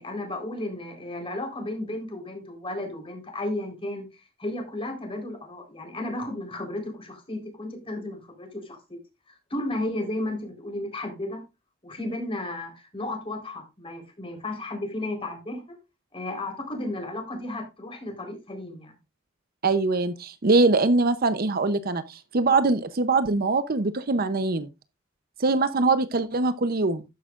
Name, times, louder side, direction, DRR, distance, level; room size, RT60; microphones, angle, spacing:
voice 1, 0.0-9.0 9.3-11.4 11.8-15.6 16.1-18.9, left 1 dB, 25° left, 4.0 m, -34 dB
voice 2, 19.6-24.7 25.4-27.1, right 3 dB, 45° right, 0.7 m, -23 dB
12.5 x 9.8 x 2.5 m
head